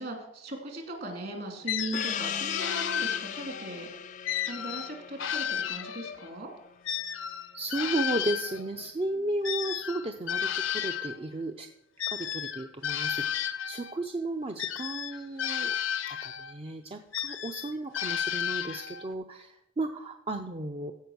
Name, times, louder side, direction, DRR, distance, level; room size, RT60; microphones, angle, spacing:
voice 1, 0.0-3.9 4.5-6.5, right 1 dB, 50° right, 2 dB, 2.6 m, -38 dB
sound 1, 1.7-3.7 4.3-6.3 6.8-11.2 12.0-14.0 14.6-16.6 17.1-19.1, left 9 dB, 70° left, 0.7 m, -33 dB
Gong, 1.9-7.0, left 8 dB, 40° left, 0.3 m, -38 dB
voice 2, 7.5-11.7 12.1-15.7 16.1-20.9, right 2 dB, 30° right, 5 dB, 0.5 m, -34 dB
15.0 x 5.2 x 6.3 m, 0.85 s
head